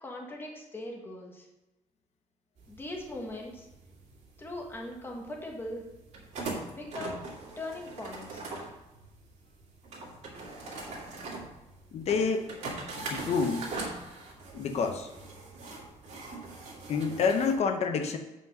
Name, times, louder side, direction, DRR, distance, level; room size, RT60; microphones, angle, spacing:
voice 1, 0.0-1.4 2.7-3.7 4.4-5.8 6.7-7.2 7.6-8.4, left 1 dB, 15° left, 0 dB, 1.4 m, -40 dB
sound 1, 2.6-17.5, right 3 dB, 60° right, 2.3 m, -42 dB
voice 2, 11.9-12.5 13.1-13.7 14.5-15.1 16.9-18.2, left 5 dB, 55° left, 5 dB, 0.8 m, -28 dB
8.0 x 5.4 x 5.3 m, 0.98 s
cardioid pair, 170°, 13 cm